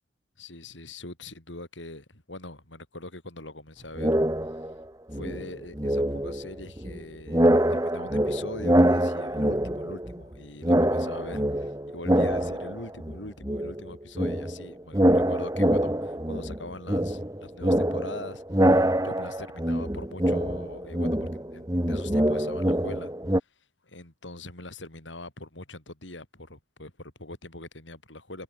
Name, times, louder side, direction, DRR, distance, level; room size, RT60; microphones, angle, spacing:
voice 1, 0.4-4.2 4.6-4.7 5.1-28.4, left 2 dB, 80° left, 6.3 m, -42 dB
sound 1, 4.0-4.8 5.1-7.0 7.3-10.3 10.6-13.2 13.4-23.4, right 1 dB, 20° right, 2.3 m, -25 dB
head